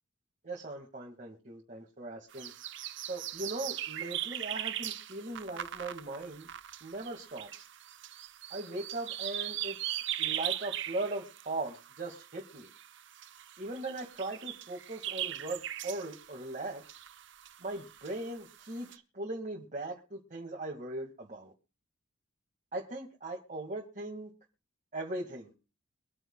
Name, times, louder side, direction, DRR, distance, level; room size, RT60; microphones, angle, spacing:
voice 1, 0.4-2.5 3.1-6.5 6.8-7.6 8.5-12.7 13.6-16.8 17.6-21.5 22.7-24.3 24.9-25.5, right 2 dB, 40° right, -1 dB, 2.0 m, -39 dB
sound 1, 2.3-18.9, right 12 dB, 60° right, 0.8 m, -40 dB
24.0 x 9.3 x 2.3 m, 0.34 s
head